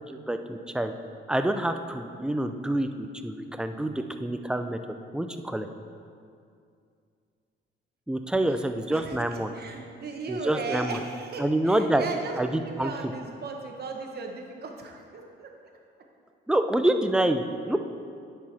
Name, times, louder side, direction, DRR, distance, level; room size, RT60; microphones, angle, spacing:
voice 1, 0.1-0.9 1.3-3.9 4.2-4.8 5.1-5.7 8.1-9.5 10.3-11.0 11.4-12.0 12.4-12.9 16.5-17.8, right 1 dB, 5° right, 7 dB, 0.4 m, -27 dB
voice 2, 8.9-12.4 12.6-15.5, right 4 dB, 55° right, 2 dB, 1.0 m, -37 dB
9.5 x 4.9 x 4.2 m, 2.4 s
cardioid pair, 90°, 20 cm